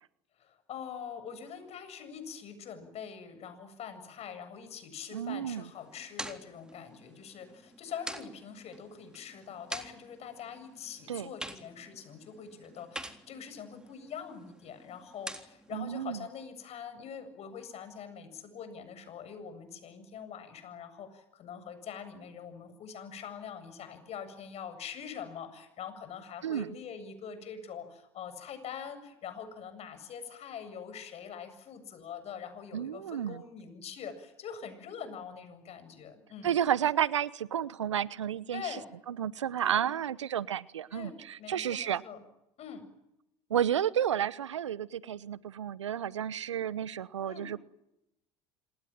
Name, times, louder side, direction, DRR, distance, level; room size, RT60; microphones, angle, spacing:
voice 1, 0.4-36.5 38.5-39.0 39.6-39.9 40.9-42.2 42.6-42.8 47.3-47.5, left 7 dB, 45° left, 10 dB, 7.8 m, -44 dB
voice 2, 5.1-5.6 11.1-11.3 15.7-16.2 26.4-26.7 32.7-33.4 36.4-38.6 39.1-42.0 43.5-47.6, right 9 dB, 85° right, 20 dB, 0.9 m, -31 dB
sound 1, 5.6-15.7, right 1 dB, 5° right, 3.6 m, -47 dB
27.5 x 22.0 x 9.2 m, 0.86 s
hypercardioid pair, 75°, 15 cm